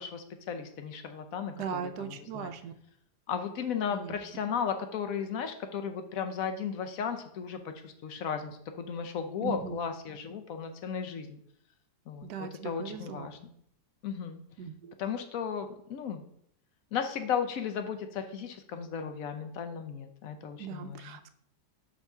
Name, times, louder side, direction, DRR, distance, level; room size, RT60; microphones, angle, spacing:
voice 1, 0.0-2.5 3.3-11.4 12.1-13.5 14.0-14.4 15.0-16.2 16.9-21.2, left 7 dB, 65° left, 7 dB, 1.0 m, -35 dB
voice 2, 1.6-2.7 3.9-4.2 9.4-9.8 12.2-13.3 14.6-14.9 20.6-21.3, right 7 dB, 75° right, 10 dB, 1.1 m, -39 dB
6.1 x 3.5 x 5.4 m, 0.70 s
omnidirectional pair, 1.8 m